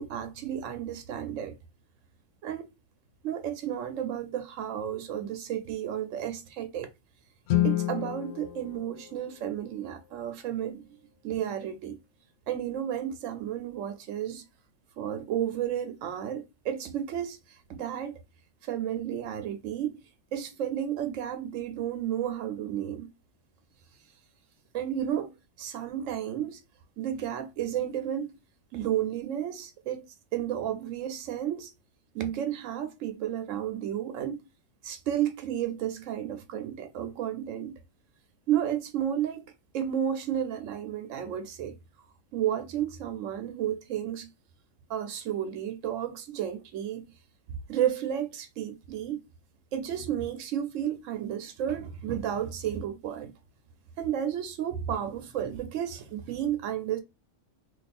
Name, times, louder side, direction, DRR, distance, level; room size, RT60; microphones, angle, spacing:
voice 1, 0.0-1.6 2.4-2.7 3.2-6.9 7.6-10.9 11.2-12.0 12.5-14.4 15.0-18.1 18.6-20.0 20.3-23.1 24.7-26.6 27.0-28.3 28.7-30.1 30.3-31.7 32.1-34.4 34.8-37.7 38.5-39.4 39.7-41.8 42.3-44.3 44.9-47.0 47.5-49.2 49.7-53.3 54.0-57.0, right 10 dB, 85° right, 1.0 m, -32 dB
Guitar, 7.5-10.0, left 13 dB, 80° left, 0.9 m, -30 dB
2.6 x 2.3 x 4.1 m
omnidirectional pair, 1.3 m